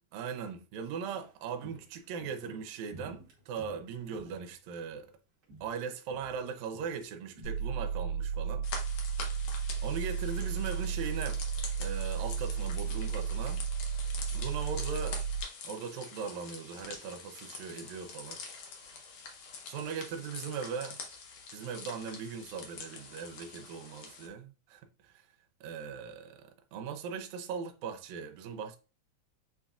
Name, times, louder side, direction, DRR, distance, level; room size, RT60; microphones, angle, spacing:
voice 1, 0.1-5.1 5.6-8.7 9.8-11.4 11.8-13.6 14.3-15.3 15.6-18.4 19.7-21.0 21.5-25.2 25.6-28.8, right 6 dB, 75° right, 1.8 m, -39 dB
Walk footsteps, 0.8-5.2 5.4-5.8 6.1-8.4 8.7-8.8, right 1 dB, 60° right, 1.1 m, -54 dB
sound 1, 7.4-15.4, right 7 dB, 90° left, 1.0 m, -33 dB
sound 2, 8.6-24.3, left 5 dB, 70° left, 1.8 m, -45 dB
7.4 x 2.5 x 2.3 m
omnidirectional pair, 3.5 m